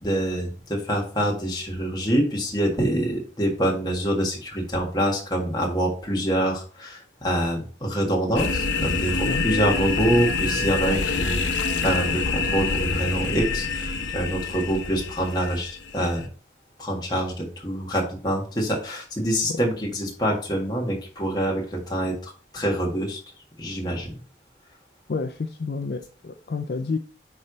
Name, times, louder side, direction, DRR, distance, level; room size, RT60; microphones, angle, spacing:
voice 1, 0.0-11.4 11.8-16.3 16.8-23.2 23.6-24.1, right 1 dB, 20° left, -1 dB, 1.7 m, -25 dB
sound 1, 8.4-16.3, left 4 dB, 85° left, 0.8 m, -26 dB
voice 2, 25.1-27.0, left 4 dB, 55° left, 6 dB, 0.4 m, -29 dB
9.6 x 3.3 x 3.9 m, 0.41 s
head